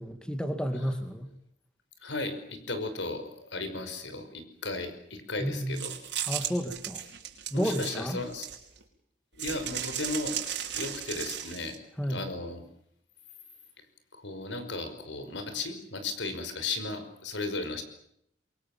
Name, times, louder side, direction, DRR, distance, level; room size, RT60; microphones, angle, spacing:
voice 1, 0.0-1.3 5.4-5.8 6.3-7.0 7.5-8.2 12.0-12.2, equal, 5° left, 7 dB, 2.2 m, -31 dB
voice 2, 2.0-5.9 7.5-8.5 9.4-11.8 12.1-12.6 13.8-13.9 14.1-17.8, left 3 dB, 80° left, 9 dB, 5.4 m, -35 dB
sound 1, 5.8-8.8 9.4-11.8, right 10 dB, 70° right, 4.7 m, -35 dB
28.5 x 23.0 x 7.4 m, 0.72 s
head